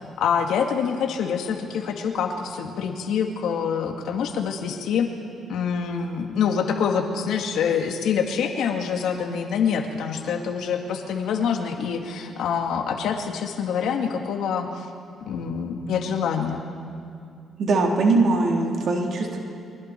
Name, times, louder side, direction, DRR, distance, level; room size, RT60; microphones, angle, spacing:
voice 1, 0.2-5.1 5.5-14.8 15.3-16.6, left 7 dB, 80° left, 3 dB, 2.2 m, -26 dB
voice 2, 17.6-19.4, right 3 dB, 60° right, 0 dB, 3.7 m, -21 dB
29.0 x 24.0 x 4.6 m, 2.3 s
cardioid pair, 90°, 0 cm